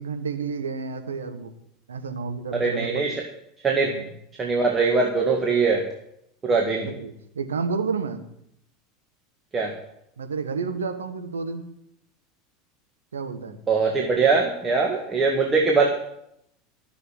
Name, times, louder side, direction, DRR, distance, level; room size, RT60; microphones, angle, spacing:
voice 1, 0.0-1.5 1.9-3.1 3.8-4.1 6.7-8.2 10.2-11.6 13.1-13.5, right 5 dB, 75° right, 7 dB, 1.3 m, -30 dB
voice 2, 2.6-3.2 3.6-3.9 4.4-5.8 6.4-6.9 9.5-9.7 13.7-15.9, right 4 dB, 25° right, 1 dB, 2.0 m, -21 dB
14.0 x 6.9 x 7.2 m, 0.78 s
figure-of-eight pair, 80°, 0 cm